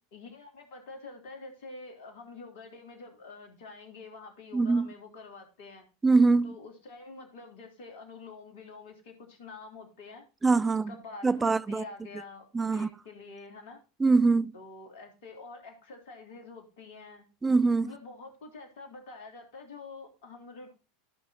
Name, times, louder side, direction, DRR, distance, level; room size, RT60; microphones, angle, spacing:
voice 1, 0.1-5.9 6.4-10.2 10.9-13.8 14.5-17.3 17.8-20.7, left 3 dB, 55° left, 3.3 m, -47 dB
voice 2, 4.5-4.9 6.0-6.5 10.4-10.9 11.2-11.8 12.5-12.9 14.0-14.5 17.4-17.9, right 3 dB, 15° right, 0.4 m, -23 dB
15.0 x 6.0 x 2.8 m
figure-of-eight pair, 80°, 0 cm